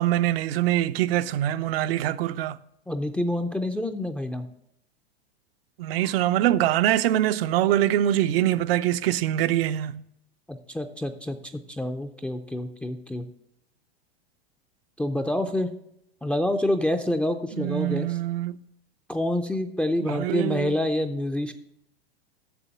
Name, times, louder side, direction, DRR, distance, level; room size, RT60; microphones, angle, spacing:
voice 1, 0.0-2.6 5.8-10.1 17.6-18.6 20.0-20.8, right 13 dB, 65° right, 0.6 m, -24 dB
voice 2, 2.9-4.5 10.5-13.3 15.0-15.7 16.2-18.1 19.1-21.5, left 1 dB, 5° left, 0.4 m, -27 dB
7.0 x 6.4 x 7.5 m
hypercardioid pair, 120°, 32 cm